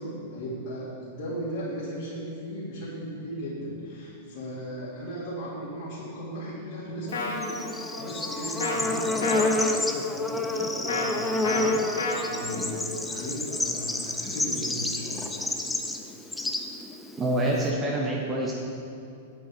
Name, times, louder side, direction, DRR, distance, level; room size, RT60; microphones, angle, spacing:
voice 1, 0.0-15.5, equal, 60° left, -9 dB, 2.4 m, -36 dB
sound 1, 7.1-7.4 8.6-8.8 9.2-9.5 10.9-11.1 11.4-11.6 12.0-12.2, left 3 dB, 75° left, 1.2 m, -29 dB
Bird / Insect, 7.1-17.7, left 2 dB, 10° left, 0.6 m, -29 dB
voice 2, 17.2-18.5, right 1 dB, 25° right, -3 dB, 1.3 m, -26 dB
8.4 x 7.9 x 4.7 m, 2.6 s
hypercardioid pair, 105°, 0 cm